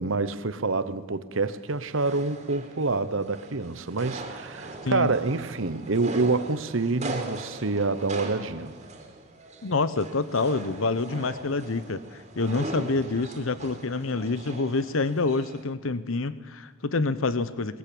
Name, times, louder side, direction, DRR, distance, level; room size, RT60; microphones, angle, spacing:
voice 1, 0.0-8.7, right 3 dB, 65° right, 13 dB, 1.0 m, -27 dB
sound 1, 1.5-15.6, right 2 dB, 35° right, 2.9 m, -40 dB
voice 2, 9.6-17.8, left 3 dB, 75° left, 14 dB, 0.9 m, -27 dB
20.0 x 15.5 x 8.6 m, 1.5 s
head